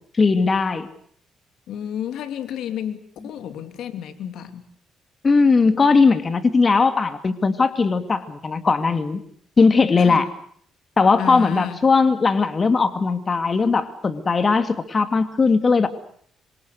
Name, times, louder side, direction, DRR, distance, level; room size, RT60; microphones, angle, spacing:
voice 1, 0.2-0.9 5.2-9.2 9.6-10.3 11.0-15.9, left 4 dB, 35° left, 10 dB, 2.4 m, -18 dB
voice 2, 1.7-4.6 10.0-10.3 11.2-11.8, left 9 dB, 80° left, 10 dB, 2.8 m, -31 dB
26.5 x 26.0 x 6.6 m, 0.62 s
cardioid pair, 90°, 0 cm